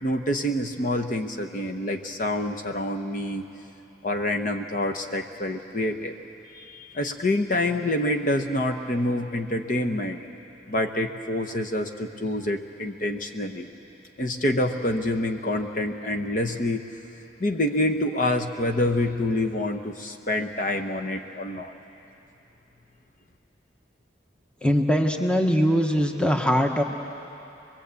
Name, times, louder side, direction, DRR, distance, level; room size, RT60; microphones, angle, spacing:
voice 1, 0.0-3.4 4.0-6.2 6.5-10.2 10.7-13.7 14.2-16.9 17.4-21.7, left 1 dB, 45° left, 4 dB, 0.9 m, -27 dB
voice 2, 24.6-26.8, equal, 5° left, 3 dB, 1.1 m, -21 dB
25.0 x 21.5 x 8.2 m, 2.9 s
head